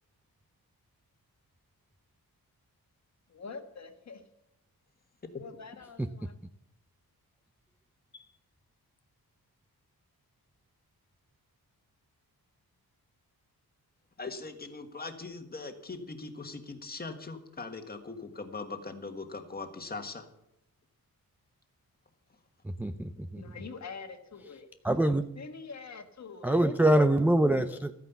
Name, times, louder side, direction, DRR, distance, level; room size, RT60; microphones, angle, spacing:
voice 1, 3.3-4.2 5.4-6.3 23.3-24.7 25.4-26.6, left 5 dB, 45° left, 6 dB, 1.6 m, -45 dB
voice 2, 14.2-20.3, left 3 dB, 25° left, 6 dB, 1.5 m, -40 dB
voice 3, 22.6-23.4 24.8-25.2 26.4-27.9, right 1 dB, 5° right, 8 dB, 0.4 m, -25 dB
13.5 x 9.4 x 7.1 m, 0.83 s
wide cardioid pair, 155°, 37 cm